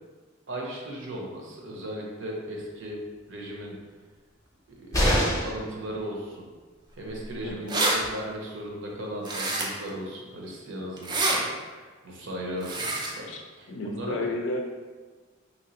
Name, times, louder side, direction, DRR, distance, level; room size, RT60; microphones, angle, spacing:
voice 1, 0.5-3.0 3.3-3.8 4.8-6.5 6.9-12.9 13.1-14.3, equal, 70° right, -2 dB, 0.7 m, -37 dB
sound 1, 4.9-5.7 7.6-7.7 8.0-8.1, equal, 15° left, 0.6 m, -24 dB
sound 2, 7.2-7.3 7.5-8.0 9.2-9.9 11.0-11.4 12.6-13.1, right 2 dB, 20° right, 0.4 m, -26 dB
voice 2, 7.4-7.8 13.3-13.4 13.7-14.6, left 2 dB, 65° left, 1 dB, 0.5 m, -32 dB
3.0 x 3.0 x 2.9 m, 1.4 s
head